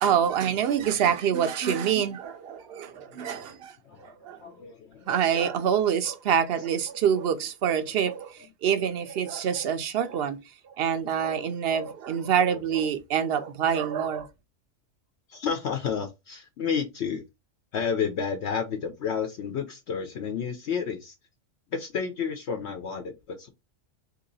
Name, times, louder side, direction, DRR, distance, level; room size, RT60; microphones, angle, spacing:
voice 1, 0.0-3.8 4.0-4.4 5.1-10.4 10.7-14.3, right 8 dB, 60° right, 0.7 m, -26 dB
voice 2, 2.4-5.2 5.6-5.7 8.4-8.5 8.8-8.9 11.4-11.5 15.3-17.2 17.7-21.2 21.7-23.5, left 6 dB, 65° left, 0.9 m, -32 dB
2.9 x 2.8 x 3.9 m
omnidirectional pair, 1.3 m